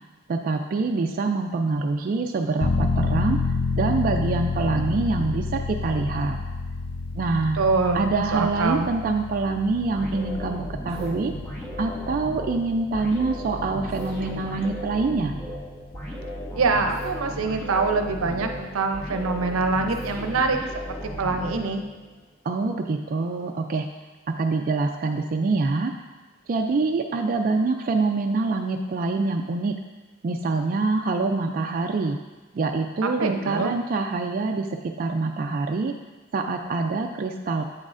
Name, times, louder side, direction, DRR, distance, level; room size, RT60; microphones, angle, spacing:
voice 1, 0.3-3.4 3.7-6.4 7.1-7.6 7.9-11.3 11.8-15.3 22.4-23.9 24.3-25.9 26.5-29.8 30.2-32.2 32.5-35.9 36.3-37.6, right 3 dB, 45° right, 3 dB, 0.3 m, -25 dB
sound 1, 2.6-15.1 15.5-15.6, left 4 dB, 55° left, 0.3 m, -30 dB
voice 2, 7.5-8.0 8.3-8.9 16.5-20.6 20.9-21.8 33.0-33.7, right 3 dB, 80° right, 5 dB, 0.6 m, -24 dB
sound 2, 9.9-22.1, equal, 10° left, 1.6 m, -35 dB
8.1 x 6.3 x 2.5 m, 1.2 s
head